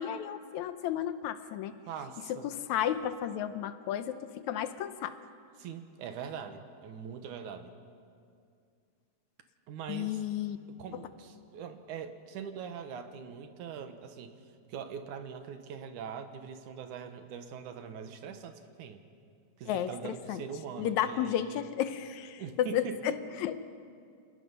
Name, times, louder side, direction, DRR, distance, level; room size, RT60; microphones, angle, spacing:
voice 1, 0.0-1.8 2.3-5.2 9.9-10.6 19.7-20.4 20.8-23.6, left 10 dB, 75° left, 11 dB, 2.0 m, -33 dB
voice 2, 1.9-2.5 5.6-7.7 9.7-10.1 10.8-14.4 14.7-19.0 19.6-21.6 22.4-23.0, right 7 dB, 85° right, 8 dB, 2.7 m, -42 dB
28.0 x 18.5 x 5.5 m, 2.3 s
omnidirectional pair, 3.5 m